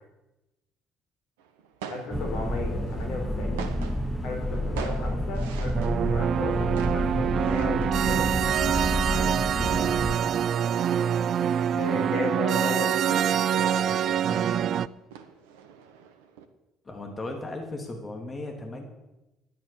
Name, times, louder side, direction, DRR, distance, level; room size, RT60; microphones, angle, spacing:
sound 1, 1.4-16.5, right 6 dB, 80° right, 1.2 m, -45 dB
voice 1, 1.9-3.7 4.2-8.5 11.7-12.9 13.3-14.5, left 2 dB, 65° left, 2 dB, 4.1 m, -35 dB
sound 2, 2.1-10.1, equal, 5° left, 3.2 m, -30 dB
sound 3, 5.7-14.9, right 9 dB, 55° right, 0.4 m, -25 dB
voice 2, 9.1-10.2 16.8-18.8, left 2 dB, 30° left, 3 dB, 2.9 m, -37 dB
13.5 x 10.5 x 7.0 m, 1.0 s
hypercardioid pair, 50°, 0 cm